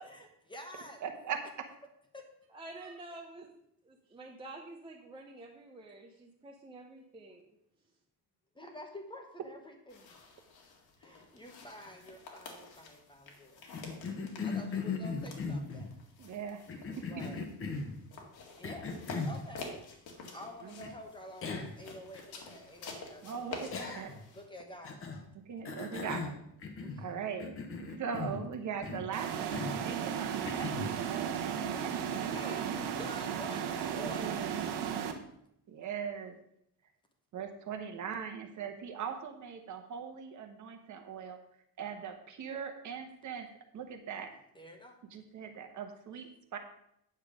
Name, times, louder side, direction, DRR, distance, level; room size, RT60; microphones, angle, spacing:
voice 1, 0.1-1.0 2.1-2.2 8.5-10.1 11.0-13.6 14.4-15.9 17.1-17.4 18.6-18.9 19.3-19.7 20.0-23.8 24.3-25.1 26.8-27.3 31.7-34.4 44.5-45.0, left 1 dB, 10° left, 3 dB, 1.0 m, -49 dB
voice 2, 1.0-1.4 16.2-16.8 20.6-20.7 23.2-24.1 25.5-26.3 27.0-27.5 27.9-32.3 33.9-34.5 35.7-36.3 37.3-41.4 41.8-43.5 43.7-44.3 45.1-46.6, right 7 dB, 50° right, 5 dB, 1.2 m, -40 dB
voice 3, 2.5-3.5 3.8-7.6, right 2 dB, 15° right, -1 dB, 0.8 m, -49 dB
sound 1, 9.9-24.4, left 3 dB, 70° left, 2.1 m, -49 dB
Cough, 13.7-15.9 16.7-18.0 18.6-19.4 20.8-20.9 21.4-21.8 22.1-22.2 23.7-24.3 24.8-25.2 25.6-27.1 27.4-28.5 28.8-29.1 29.5-29.8 30.4-30.9, left 4 dB, 35° left, 1.2 m, -38 dB
sound 2, 29.1-35.1, right 8 dB, 85° right, 1.2 m, -35 dB
9.0 x 7.1 x 4.9 m, 0.74 s
cardioid pair, 175°, 39 cm